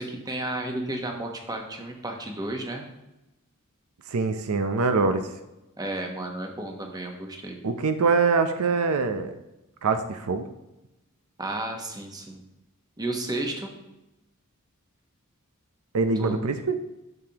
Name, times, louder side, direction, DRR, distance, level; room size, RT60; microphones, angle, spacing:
voice 1, 0.0-2.9 5.8-7.6 11.4-12.4 13.0-13.7 16.2-16.4, right 1 dB, 15° right, 3 dB, 1.0 m, -32 dB
voice 2, 4.1-5.3 7.6-9.3 9.8-10.5 15.9-16.8, right 4 dB, 80° right, 9 dB, 0.6 m, -24 dB
10.5 x 6.6 x 2.9 m, 0.97 s
head